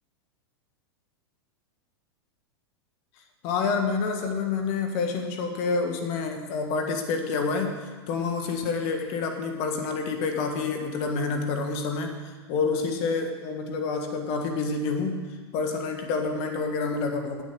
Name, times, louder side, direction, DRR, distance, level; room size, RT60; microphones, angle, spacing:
voice 1, 3.4-12.2 12.5-15.2 15.5-17.4, left 4 dB, 50° left, 4 dB, 1.6 m, -28 dB
8.8 x 8.4 x 6.3 m, 1.5 s
hypercardioid pair, 105°, 14 cm